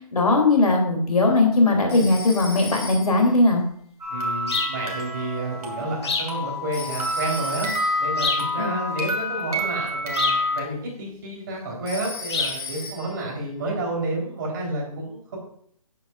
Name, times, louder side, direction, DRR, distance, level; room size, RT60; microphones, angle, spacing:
voice 1, 0.1-3.6 8.6-8.7, left 2 dB, 75° left, 2 dB, 3.1 m, -19 dB
Telephone, 1.9-3.3 6.7-8.1 11.9-13.3, left 3 dB, 15° left, 1.7 m, -37 dB
sound 1, 4.0-10.6, left 1 dB, 80° right, 2.7 m, -28 dB
voice 2, 4.1-7.7 8.0-15.4, right 2 dB, 35° right, -3 dB, 3.8 m, -30 dB
sound 2, 4.5-4.8 6.0-6.4 8.2-8.5 10.1-10.5 12.3-12.6, left 4 dB, 45° left, 1.3 m, -26 dB
10.5 x 9.2 x 2.5 m, 0.64 s
figure-of-eight pair, 155°, 19 cm